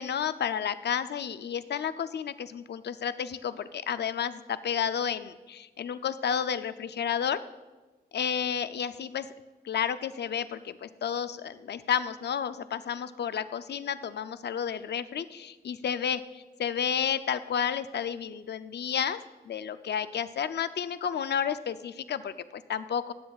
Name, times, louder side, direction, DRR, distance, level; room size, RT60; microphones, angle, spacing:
voice 1, 0.0-7.4 8.1-9.3 9.6-19.2 19.5-23.1, left 8 dB, 85° left, 13 dB, 0.5 m, -31 dB
19.0 x 7.6 x 2.4 m, 1.2 s
cardioid pair, 65°, 17 cm